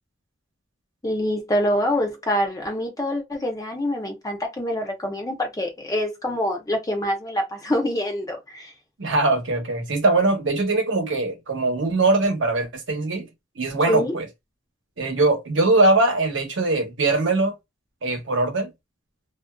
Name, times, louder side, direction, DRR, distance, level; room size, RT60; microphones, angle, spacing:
voice 1, 1.0-8.7 13.9-14.1, left 1 dB, 20° left, 0.7 m, -25 dB
voice 2, 9.0-13.3 13.6-14.3 15.0-17.5 18.0-18.7, right 2 dB, 80° right, 0.9 m, -21 dB
2.5 x 2.2 x 2.2 m
head